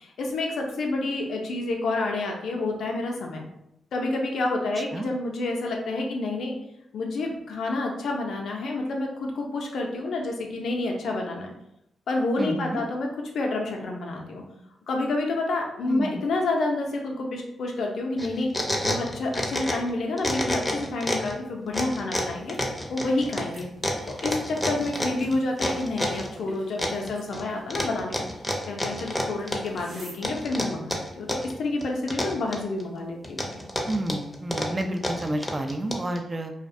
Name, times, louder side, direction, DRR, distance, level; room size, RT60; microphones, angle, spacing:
voice 1, 0.0-3.4 3.9-6.6 6.9-11.5 12.1-13.1 13.3-14.4 14.9-22.6 22.9-23.7 24.1-28.2 28.7-33.6, left 2 dB, 75° left, 1 dB, 0.4 m, -29 dB
voice 2, 12.4-12.8 15.9-16.2 33.9-36.5, right 1 dB, 35° right, 5 dB, 0.3 m, -30 dB
sound 1, 18.2-19.9 20.2-21.3 21.7-26.3 26.8-27.4 27.7-29.8 30.2-31.5 31.8-32.8 33.2-36.2, left 1 dB, 15° left, 0.6 m, -29 dB
sound 2, 22.2-30.2, right 1 dB, 80° right, 0.9 m, -49 dB
2.3 x 2.1 x 2.6 m, 0.81 s
supercardioid pair, 45°, 0 cm